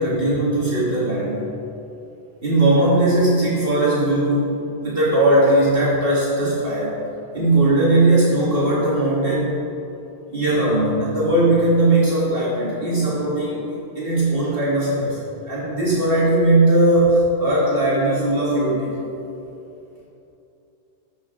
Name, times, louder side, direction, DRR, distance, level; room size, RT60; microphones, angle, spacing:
voice 1, 0.0-1.5 2.4-7.0 7.3-9.5 10.3-13.6 14.0-15.2 15.5-19.0, right 1 dB, 55° right, -7 dB, 1.8 m, -19 dB
13.5 x 5.7 x 3.6 m, 2.9 s
omnidirectional pair, 1.1 m